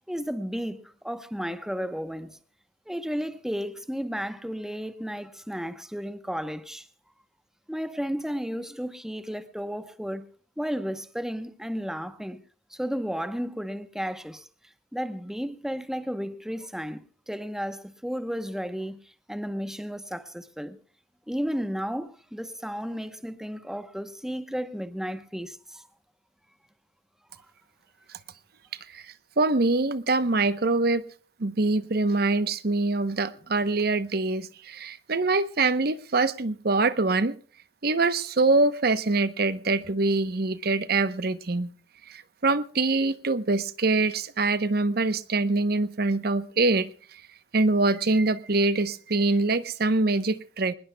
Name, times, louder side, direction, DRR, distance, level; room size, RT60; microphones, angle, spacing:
voice 1, 0.1-2.4 2.9-6.9 7.7-10.3 10.6-12.4 12.7-14.5 14.9-20.8 21.3-25.9, equal, 5° right, 0.9 m, -33 dB
voice 2, 28.9-31.0 31.4-37.3 37.8-41.7 42.1-46.9 47.5-50.7, right 3 dB, 60° right, 0.9 m, -24 dB
23.5 x 20.5 x 2.2 m
head